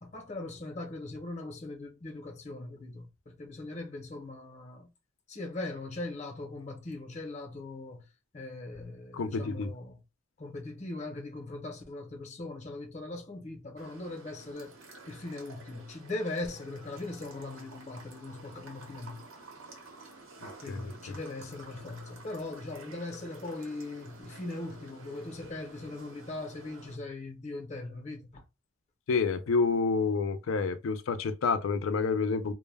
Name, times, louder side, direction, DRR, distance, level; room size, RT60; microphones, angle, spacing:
voice 1, 0.0-4.9 5.3-8.1 8.3-10.0 10.4-14.8 15.1-19.2 20.6-28.4, left 2 dB, 35° left, 0.7 m, -40 dB
voice 2, 9.1-9.7 20.7-21.1 29.1-32.5, left 4 dB, 80° left, 0.4 m, -29 dB
sound 1, 13.8-27.0, right 2 dB, 85° right, 0.8 m, -51 dB
2.2 x 2.1 x 3.2 m
head